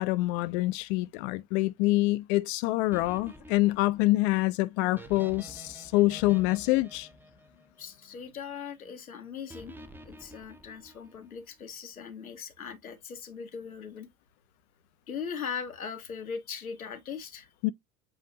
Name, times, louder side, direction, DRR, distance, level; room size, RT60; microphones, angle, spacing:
voice 1, 0.0-7.1 17.6-17.7, left 19 dB, 50° left, 0.5 m, -26 dB
sound 1, 2.9-8.2 9.5-11.4, right 1 dB, 5° right, 0.5 m, -50 dB
voice 2, 7.8-9.8 10.0-14.1 15.1-17.5, left 6 dB, 90° left, 0.9 m, -39 dB
7.7 x 2.6 x 2.7 m
figure-of-eight pair, 75°, 42 cm